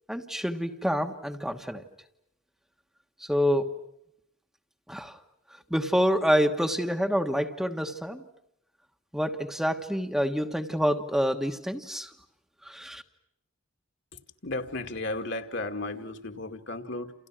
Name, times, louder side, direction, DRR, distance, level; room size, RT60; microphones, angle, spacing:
voice 1, 0.1-1.8 3.2-3.7 4.9-5.2 5.7-8.2 9.1-12.1 12.6-13.0, equal, ahead, 4 dB, 1.3 m, -27 dB
voice 2, 14.1-17.1, left 2 dB, 55° left, 6 dB, 2.3 m, -34 dB
29.5 x 29.0 x 6.3 m, 0.80 s
head